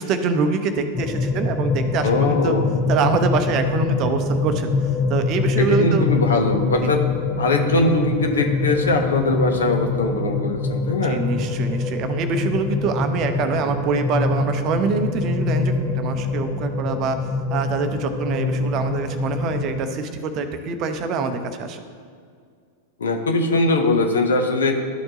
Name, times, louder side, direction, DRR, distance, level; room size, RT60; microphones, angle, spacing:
voice 1, 0.0-2.5 2.9-4.7 5.1-6.1 6.8-6.9 11.0-17.1 17.5-21.8, right 4 dB, 35° right, 8 dB, 0.6 m, -24 dB
sound 1, 0.9-19.9, left 3 dB, 20° left, 0.5 m, -24 dB
voice 2, 2.0-2.7 5.5-7.0 7.4-11.2 23.0-24.8, left 2 dB, 65° left, 4 dB, 0.8 m, -21 dB
12.5 x 4.4 x 2.8 m, 2.1 s
figure-of-eight pair, 90°, 0 cm